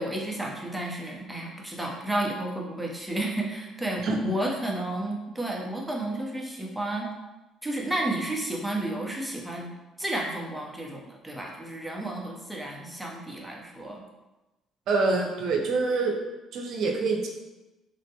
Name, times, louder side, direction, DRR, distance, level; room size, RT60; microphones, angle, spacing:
voice 1, 0.0-7.1 7.6-9.7 10.0-14.0, right 1 dB, 5° right, -2 dB, 0.6 m, -32 dB
voice 2, 14.9-16.1 16.5-17.3, right 3 dB, 65° right, 1 dB, 0.5 m, -25 dB
3.5 x 2.1 x 2.8 m, 1.1 s
cardioid pair, 100°, 0 cm